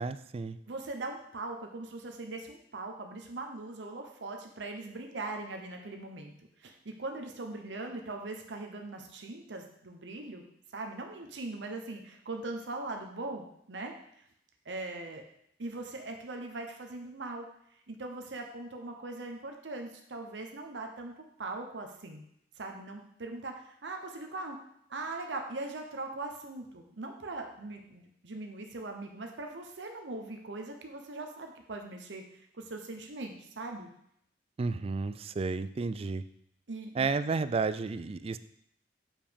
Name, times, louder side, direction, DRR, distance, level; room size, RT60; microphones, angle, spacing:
voice 1, 0.0-0.6 34.6-36.2 36.9-38.4, right 4 dB, 35° right, 13 dB, 0.3 m, -32 dB
voice 2, 0.7-6.3 6.6-10.4 10.7-13.9 14.6-15.2 15.6-17.5 17.9-21.1 21.4-22.2 22.6-24.6 24.9-33.9 36.7-37.1, right 2 dB, 80° right, 3 dB, 0.9 m, -40 dB
7.3 x 4.9 x 5.2 m, 0.72 s
head